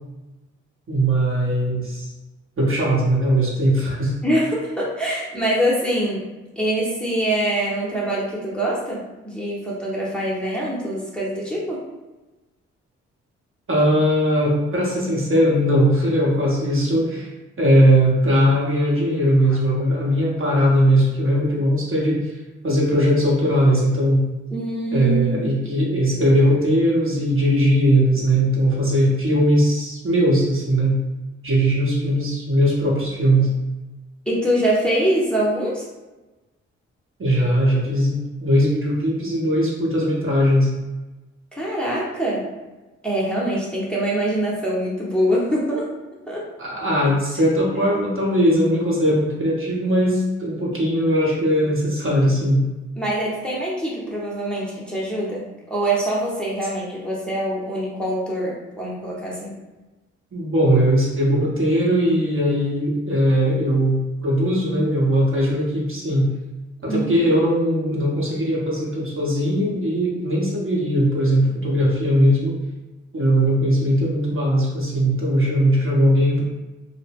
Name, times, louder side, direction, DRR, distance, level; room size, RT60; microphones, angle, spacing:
voice 1, 0.9-2.1 2.6-4.1 13.7-17.3 17.6-22.3 22.6-24.2 24.9-31.0 31.4-33.5 37.2-40.7 46.6-52.6 60.3-66.3 66.8-72.6 73.1-76.4, equal, 40° right, -4 dB, 0.9 m, -19 dB
voice 2, 4.2-6.3 6.6-9.0 9.2-11.8 24.5-25.5 34.3-35.8 41.5-42.5 43.0-45.9 46.3-46.4 53.0-59.6 66.9-67.1, right 1 dB, 5° left, -6 dB, 0.9 m, -24 dB
2.1 x 2.0 x 3.4 m, 1.1 s
hypercardioid pair, 40°, 32 cm